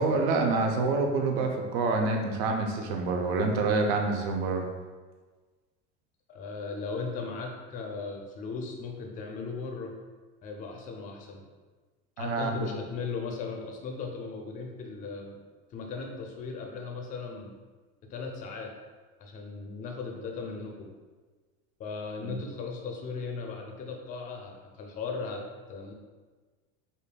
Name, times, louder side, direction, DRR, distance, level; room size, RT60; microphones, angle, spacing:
voice 1, 0.0-4.6 12.2-12.7 22.2-22.4, right 3 dB, 85° right, 3 dB, 0.7 m, -27 dB
voice 2, 6.3-9.9 10.4-11.4 12.2-15.4 15.7-17.5 18.1-18.7 19.2-20.9 21.8-25.4 25.7-25.9, left 4 dB, 30° left, 2 dB, 0.4 m, -37 dB
5.0 x 2.7 x 2.2 m, 1.3 s
cardioid pair, 165°, 29 cm